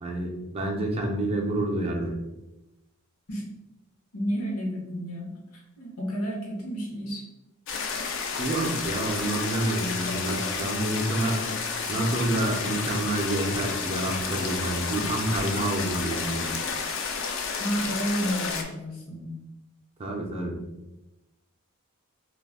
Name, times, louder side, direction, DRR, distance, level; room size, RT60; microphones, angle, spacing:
voice 1, 0.0-2.1 8.4-11.4 11.9-16.5 20.0-20.6, right 1 dB, 30° right, 0 dB, 0.5 m, -28 dB
voice 2, 4.1-5.3 5.8-7.2 17.6-19.4, equal, 75° left, -2 dB, 0.8 m, -31 dB
sound 1, 7.7-18.6, left 5 dB, 60° left, 0.4 m, -31 dB
2.3 x 2.1 x 3.4 m, 0.95 s
head